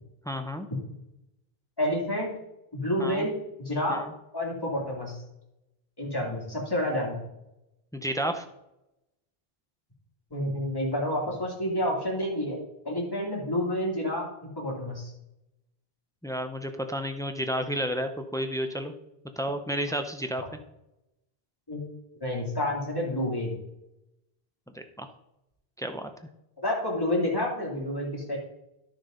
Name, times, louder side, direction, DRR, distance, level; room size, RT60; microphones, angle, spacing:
voice 1, 0.3-0.7 3.0-3.3 3.9-4.1 7.9-8.5 16.2-18.9 19.4-20.4 24.7-25.1 25.8-26.1, equal, 5° left, 6 dB, 0.6 m, -31 dB
voice 2, 1.8-2.3 2.7-4.0 4.3-5.2 6.0-7.2 10.3-12.6 12.8-15.1 21.7-21.8 22.2-23.5 26.6-28.4, left 1 dB, 20° left, -3 dB, 2.6 m, -29 dB
11.5 x 6.4 x 3.9 m, 0.89 s
omnidirectional pair, 1.1 m